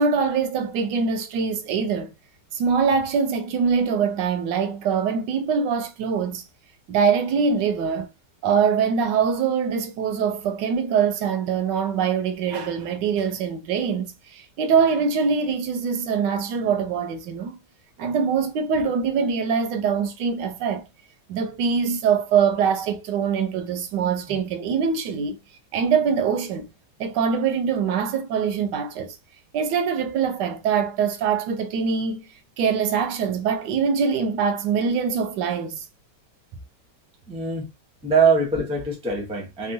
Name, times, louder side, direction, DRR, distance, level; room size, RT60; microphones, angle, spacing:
voice 1, 0.0-2.1 2.5-6.4 6.9-8.1 8.4-17.6 18.0-20.8 21.3-25.4 25.7-26.7 27.0-29.1 29.5-32.3 32.6-35.8, right 6 dB, 80° right, 1.2 m, -23 dB
voice 2, 37.3-37.7 38.0-39.7, right 4 dB, 5° right, 0.5 m, -22 dB
3.5 x 2.0 x 2.7 m
omnidirectional pair, 1.9 m